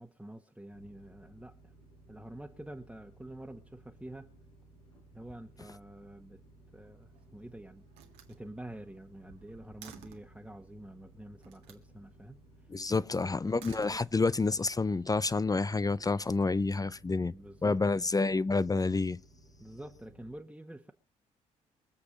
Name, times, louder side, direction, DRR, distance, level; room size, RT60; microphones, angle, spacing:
voice 1, 0.0-1.7 2.1-4.3 5.1-6.4 6.7-7.8 8.3-13.1 13.4-13.6 16.2-16.3 16.9-17.8 19.6-20.9, right 1 dB, 5° right, 1.5 m, -48 dB
sound 1, 0.7-20.3, right 1 dB, 85° left, 4.3 m, -59 dB
Slam, 6.8-7.4 7.9-10.4 11.4-11.9 13.4-14.5, right 9 dB, 75° right, 1.9 m, -54 dB
voice 2, 12.7-17.3 17.6-19.2, left 3 dB, 20° left, 0.6 m, -29 dB
23.5 x 8.1 x 5.3 m
figure-of-eight pair, 40°, 18 cm